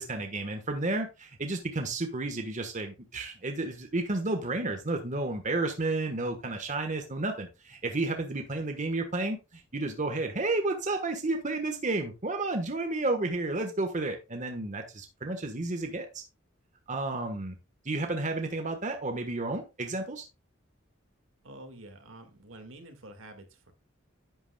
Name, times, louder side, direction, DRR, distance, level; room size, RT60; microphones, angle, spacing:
voice 1, 0.0-16.2 16.9-17.6 17.8-20.3, right 2 dB, 40° right, 4 dB, 1.3 m, -31 dB
voice 2, 21.4-23.7, right 1 dB, 75° right, 6 dB, 1.9 m, -48 dB
11.0 x 8.2 x 2.3 m, 0.27 s
head